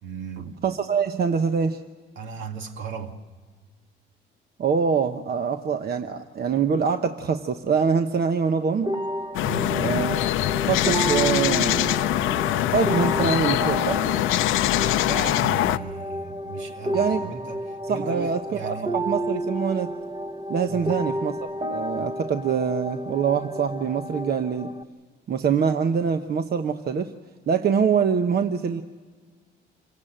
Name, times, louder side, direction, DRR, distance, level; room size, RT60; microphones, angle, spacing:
voice 1, 0.0-0.6 2.2-3.2 9.4-9.8 15.0-18.9 20.7-20.9, right 6 dB, 70° right, 2.1 m, -36 dB
voice 2, 0.6-1.8 4.6-8.9 9.7-10.3 10.6-12.0 12.7-14.0 16.9-17.3 17.8-19.9 20.5-21.4 21.6-24.7 25.3-27.1 27.5-28.8, right 6 dB, 50° right, 1.0 m, -24 dB
sound 1, 8.8-24.8, right 1 dB, 25° right, 1.0 m, -31 dB
sound 2, 9.3-15.8, left 14 dB, 90° left, 0.6 m, -23 dB
27.0 x 16.0 x 8.9 m
cardioid pair, 90°, 20 cm